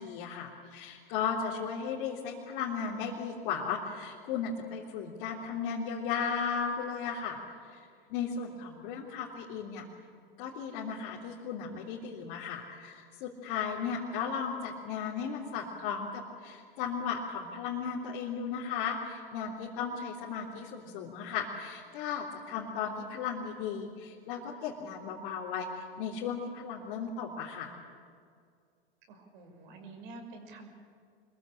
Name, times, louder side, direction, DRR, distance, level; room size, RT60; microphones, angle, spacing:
voice 1, 0.0-7.5 8.1-9.8 10.4-27.8, left 6 dB, 50° left, -5 dB, 3.5 m, -35 dB
voice 2, 29.1-30.7, right 3 dB, 60° right, 5 dB, 5.9 m, -48 dB
25.5 x 22.0 x 8.7 m, 2.2 s
hypercardioid pair, 90°, 29 cm